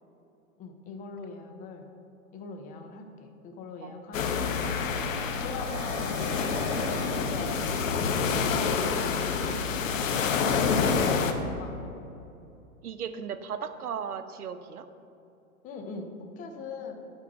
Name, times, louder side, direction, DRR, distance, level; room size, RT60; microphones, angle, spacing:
voice 1, 0.6-1.9 2.3-6.6 7.1-7.8 8.3-11.8 15.6-16.9, left 3 dB, 20° left, 4 dB, 0.6 m, -42 dB
sound 1, 4.1-11.3, left 5 dB, 60° left, 0.9 m, -27 dB
sound 2, 5.6-7.9, right 5 dB, 25° right, 0.8 m, -43 dB
voice 2, 12.8-14.9, right 7 dB, 85° right, 11 dB, 0.7 m, -36 dB
9.1 x 4.4 x 6.0 m, 2.8 s
hypercardioid pair, 115°, 44 cm